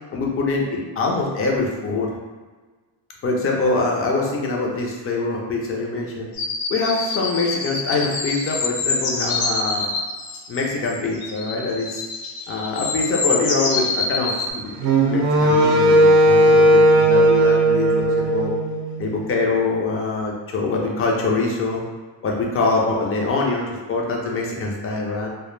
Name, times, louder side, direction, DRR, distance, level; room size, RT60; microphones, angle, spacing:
voice 1, 0.1-2.1 3.2-6.3 6.7-9.9 10.5-12.1 12.5-14.7 15.0-18.5 19.0-21.8 22.2-25.3, left 3 dB, 30° left, -1 dB, 0.4 m, -24 dB
sound 1, 6.3-14.5, left 3 dB, 80° left, 0.6 m, -26 dB
Wind instrument woodwind instrument, 14.8-19.0, right 1 dB, 50° right, 0.5 m, -15 dB
2.1 x 2.1 x 3.0 m, 1.4 s
cardioid pair, 135°, 47 cm